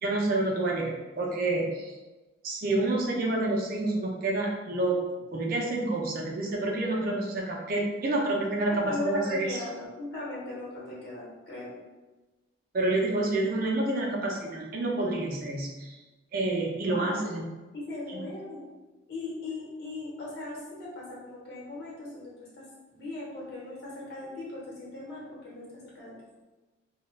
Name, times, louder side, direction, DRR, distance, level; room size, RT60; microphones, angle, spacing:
voice 1, 0.0-1.9 2.4-9.6 12.7-16.0 16.3-17.5 18.1-18.3, right 2 dB, 45° right, -2 dB, 0.4 m, -28 dB
voice 2, 8.7-11.8 16.9-17.4 17.7-18.6 19.1-26.1, left 2 dB, 55° left, -5 dB, 0.9 m, -39 dB
2.3 x 2.1 x 3.1 m, 1.2 s
head